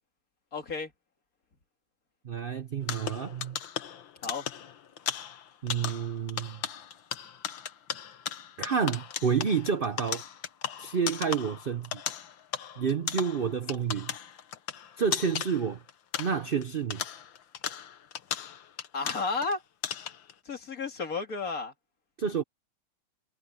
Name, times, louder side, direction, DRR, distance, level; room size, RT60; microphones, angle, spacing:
voice 1, 0.5-0.9 4.2-4.5 18.9-19.6 20.5-21.7, left 4 dB, 50° left, 2.5 m, -32 dB
voice 2, 2.2-3.6 5.6-6.6 8.6-10.2 10.8-12.0 12.8-14.1 15.0-15.8 16.2-17.0 22.2-22.4, right 6 dB, 65° right, 0.5 m, -29 dB
sound 1, 2.8-16.6 16.9-19.5 19.8-20.3, left 9 dB, 80° left, 1.9 m, -37 dB
omnidirectional pair, 2.1 m